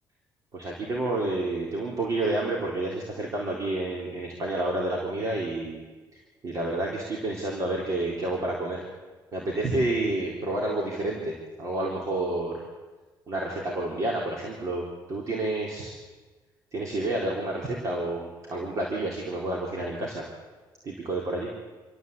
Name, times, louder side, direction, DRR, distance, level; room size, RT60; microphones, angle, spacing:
voice 1, 0.5-5.8 6.4-8.8 9.3-12.6 13.3-15.9 16.7-20.3 20.8-21.5, right 2 dB, 45° right, -2 dB, 4.0 m, -29 dB
26.5 x 14.0 x 8.5 m, 1.3 s
cardioid pair, 135°, 8 cm